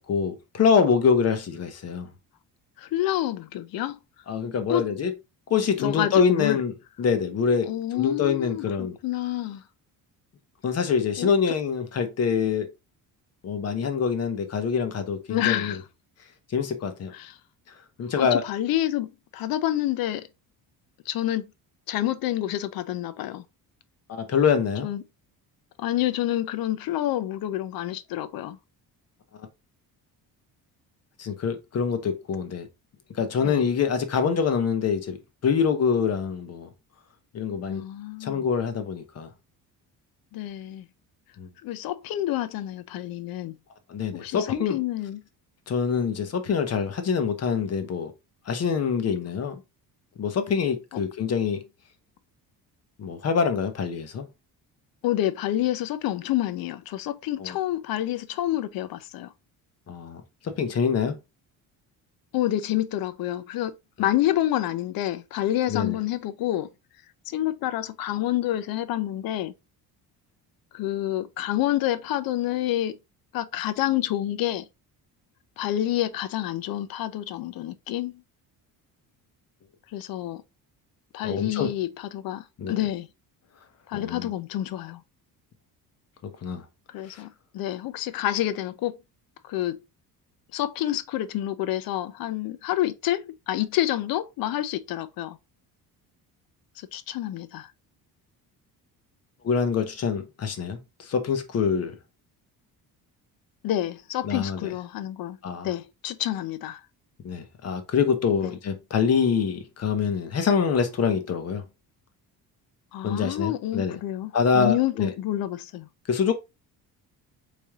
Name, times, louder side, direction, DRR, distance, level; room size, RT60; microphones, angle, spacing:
voice 1, 0.0-2.1 4.3-5.1 5.5-6.7 7.0-9.0 10.6-12.7 13.4-15.8 16.5-17.1 18.0-18.4 24.1-24.9 31.2-32.7 33.1-35.2 35.4-36.7 37.3-37.8 38.2-39.3 41.4-41.5 43.9-44.8 45.7-48.1 48.5-49.6 50.2-51.6 53.0-54.3 57.4-57.6 59.9-61.2 65.7-66.0 81.2-81.7 82.6-82.8 83.9-84.3 86.4-86.6 87.1-87.2 99.4-101.9 104.2-104.7 105.4-105.7 107.2-111.6 113.0-114.0 114.3-115.1 116.1-116.3, left 6 dB, 40° left, 0.9 m, -25 dB
voice 2, 2.8-4.0 4.7-4.9 5.8-6.6 7.7-9.6 11.2-11.3 15.3-15.8 17.1-17.4 18.2-20.3 21.1-21.4 21.9-23.4 24.8-25.0 25.8-28.6 33.4-33.6 37.7-38.5 40.3-40.9 41.6-43.6 44.1-45.2 55.0-59.3 62.3-66.7 67.3-69.5 70.7-73.0 73.3-74.7 75.6-78.2 79.9-80.4 81.1-83.1 83.9-85.0 86.9-89.0 89.4-89.8 90.5-95.4 96.8-97.7 103.6-105.4 105.6-106.8 108.4-108.5 112.9-115.9, left 13 dB, 65° left, 0.6 m, -28 dB
4.1 x 3.3 x 3.5 m
cardioid pair, 155°, 38 cm